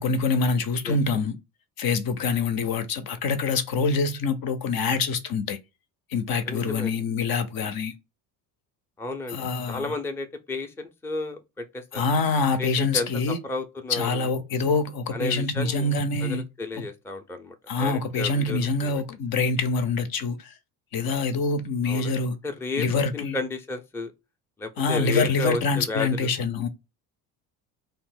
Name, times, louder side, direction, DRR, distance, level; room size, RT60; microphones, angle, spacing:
voice 1, 0.0-1.4 1.8-5.6 6.1-7.9 9.3-9.9 11.9-13.4 13.9-16.4 17.7-20.5 20.9-22.4 22.8-23.4 24.8-26.7, left 4 dB, 50° left, 0.6 m, -25 dB
voice 2, 6.5-7.0 9.0-12.0 12.6-14.3 15.1-18.9 21.9-22.2 22.4-22.9 23.1-24.1 24.6-26.3, left 2 dB, 5° left, 0.5 m, -33 dB
2.6 x 2.0 x 3.6 m
hypercardioid pair, 65°, 47 cm